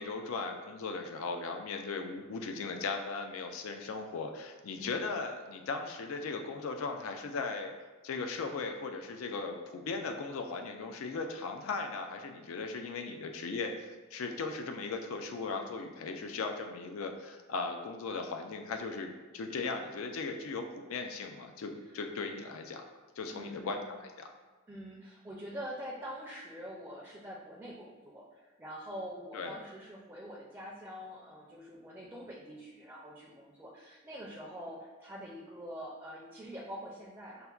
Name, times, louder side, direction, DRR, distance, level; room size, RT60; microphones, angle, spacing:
voice 1, 0.0-7.7 8.0-22.9 23.2-24.3 29.3-29.5, left 4 dB, 80° left, 5 dB, 0.4 m, -38 dB
voice 2, 4.7-5.1 23.3-23.9 24.7-37.5, equal, 15° right, -5 dB, 0.4 m, -45 dB
5.5 x 2.1 x 2.3 m, 1.3 s
head